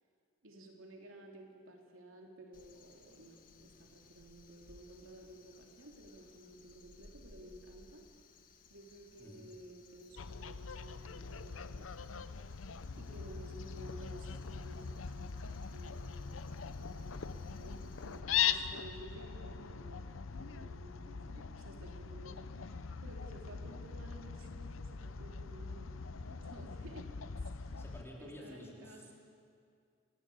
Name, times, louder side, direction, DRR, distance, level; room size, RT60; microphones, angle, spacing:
voice 1, 0.4-8.0 8.7-11.9 12.9-27.1 27.6-27.8 28.2-29.1, right 1 dB, 85° right, 1 dB, 2.9 m, -54 dB
Crow, 2.5-18.2, left 3 dB, 45° left, 1.5 m, -60 dB
Fowl, 10.2-28.0, left 7 dB, 85° left, 0.7 m, -41 dB
voice 2, 27.8-29.1, equal, 10° left, -3 dB, 3.8 m, -51 dB
28.0 x 12.0 x 8.4 m, 2.3 s
head